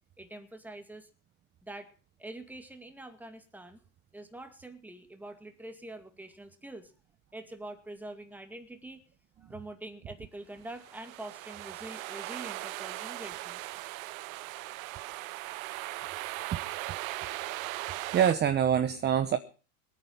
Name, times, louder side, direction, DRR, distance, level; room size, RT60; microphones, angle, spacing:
voice 1, 0.2-1.1 1.6-1.9 2.2-3.8 4.1-6.9 7.3-9.0 9.4-13.7, right 1 dB, 5° right, 7 dB, 2.2 m, -45 dB
sound 1, 10.7-18.3, right 18 dB, 65° right, 1.0 m, -39 dB
voice 2, 18.1-19.4, right 9 dB, 25° right, 11 dB, 1.1 m, -26 dB
23.0 x 9.1 x 5.6 m, 0.38 s
supercardioid pair, 130°, 44 cm